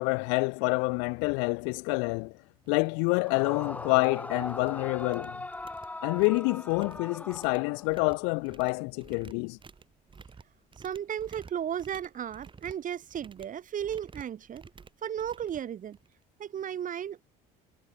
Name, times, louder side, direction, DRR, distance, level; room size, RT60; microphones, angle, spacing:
voice 1, 0.0-2.3 2.7-5.4 6.0-9.6, left 39 dB, 80° left, 0.6 m, -27 dB
sound 1, 2.1-2.2 2.6-2.9 3.1-3.5 3.8-4.7 5.0-16.2, right 5 dB, 25° right, 1.9 m, -53 dB
Yell / Screaming, 3.2-8.1, left 2 dB, 10° left, 0.5 m, -40 dB
voice 2, 10.8-14.6 15.0-16.0 16.4-17.2, right 9 dB, 45° right, 1.9 m, -35 dB
supercardioid pair, 85°, 19 cm